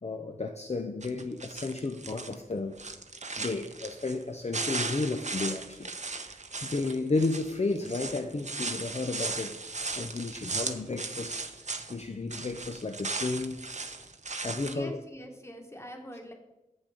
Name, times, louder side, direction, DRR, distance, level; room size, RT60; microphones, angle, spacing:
voice 1, 0.0-2.8 3.4-13.6 14.4-15.0, left 3 dB, 45° left, 0.6 m, -33 dB
sound 1, 1.0-2.3 2.7-4.2 4.5-12.0 12.3-14.7, right 3 dB, 55° right, 0.7 m, -37 dB
voice 2, 14.6-16.3, equal, 20° left, 1.4 m, -44 dB
7.5 x 6.3 x 5.0 m
wide cardioid pair, 45°, 15 cm